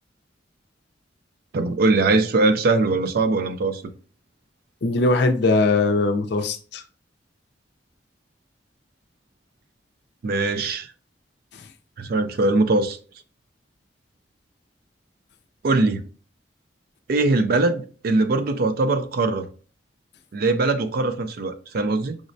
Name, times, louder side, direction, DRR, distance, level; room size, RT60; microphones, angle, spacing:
voice 1, 1.5-3.8 10.2-10.9 12.0-13.0 15.6-16.0 17.1-19.5 20.3-22.2, right 3 dB, 55° right, 0.4 m, -21 dB
voice 2, 4.8-6.8, left 3 dB, 65° left, 0.4 m, -20 dB
5.0 x 2.1 x 2.5 m
head